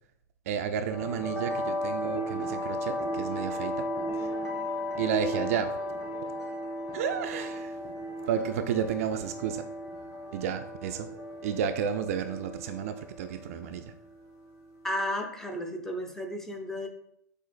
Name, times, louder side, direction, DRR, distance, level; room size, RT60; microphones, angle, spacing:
voice 1, 0.5-3.9 4.1-4.3 5.0-5.7 6.9-7.8 8.3-9.6 10.3-11.1 11.4-13.9, right 8 dB, 50° right, 8 dB, 0.3 m, -31 dB
sound 1, 0.9-15.0, equal, 25° left, 1.4 m, -35 dB
voice 2, 14.8-16.9, left 1 dB, 5° left, 3 dB, 0.6 m, -33 dB
6.8 x 2.5 x 2.4 m, 0.70 s
figure-of-eight pair, 100°, 10 cm